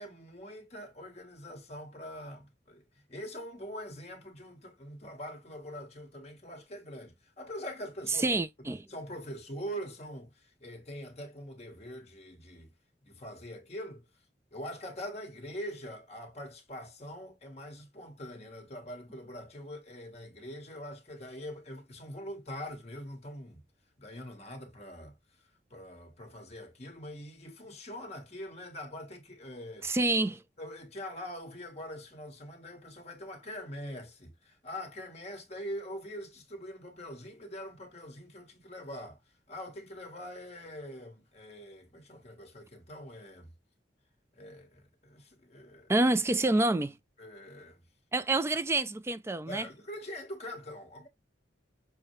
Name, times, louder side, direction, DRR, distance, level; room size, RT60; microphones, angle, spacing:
voice 1, 0.0-8.3 8.9-12.7 13.0-14.1 14.5-23.6 24.0-25.1 25.7-29.9 30.6-39.2 39.5-43.5 44.3-45.9 47.2-47.8 49.5-51.1, equal, 35° left, 1.4 m, -43 dB
voice 2, 8.2-8.9 29.8-30.4 45.9-47.0 48.1-49.7, right 2 dB, 15° right, 0.3 m, -27 dB
6.6 x 2.2 x 3.1 m
head